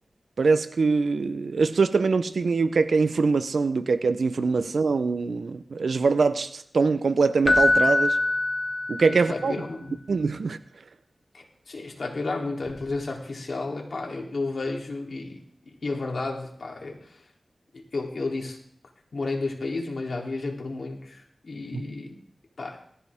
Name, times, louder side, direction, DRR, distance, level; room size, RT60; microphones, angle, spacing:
voice 1, 0.4-8.2 8.9-9.5 10.1-10.6 21.7-21.8, right 4 dB, 85° right, 0.9 m, -23 dB
Keyboard (musical), 7.4-9.4 12.7-12.8, left 2 dB, 35° left, 0.6 m, -23 dB
voice 2, 9.1-10.0 11.3-17.2 17.7-18.6 19.1-22.2 22.6-22.8, left 3 dB, 75° left, 3.5 m, -32 dB
19.0 x 14.5 x 3.7 m
wide cardioid pair, 60°, 0 cm